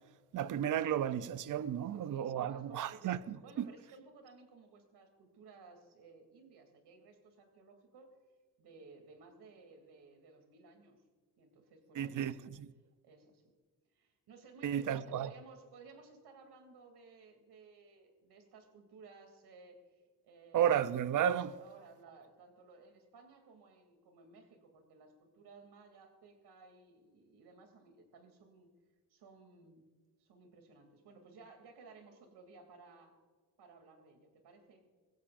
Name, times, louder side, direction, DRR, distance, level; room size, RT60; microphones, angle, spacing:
voice 1, 0.3-3.7 12.0-12.7 14.6-15.3 20.5-21.6, right 10 dB, 50° right, 0.7 m, -33 dB
voice 2, 1.9-8.1 8.6-11.0 11.4-12.3 13.0-13.5 13.9-20.8 21.6-28.7 29.1-29.9 30.2-33.2 33.6-34.9, right 4 dB, 75° right, 3.0 m, -57 dB
21.5 x 16.0 x 2.6 m
cardioid pair, 110°, 40 cm